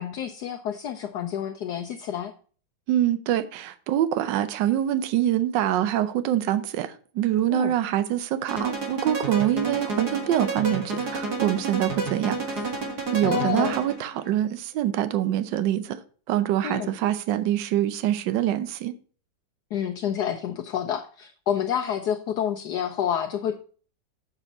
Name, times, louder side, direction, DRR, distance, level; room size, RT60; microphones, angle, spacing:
voice 1, 0.0-2.3 7.5-7.7 13.2-13.8 16.6-16.9 19.7-23.6, left 9 dB, 70° left, 1.2 m, -28 dB
voice 2, 2.9-12.6 13.1-16.0 16.3-18.9, right 12 dB, 75° right, 1.4 m, -25 dB
sound 1, 8.5-14.1, right 3 dB, 60° right, 2.1 m, -30 dB
7.1 x 6.8 x 4.1 m
omnidirectional pair, 2.0 m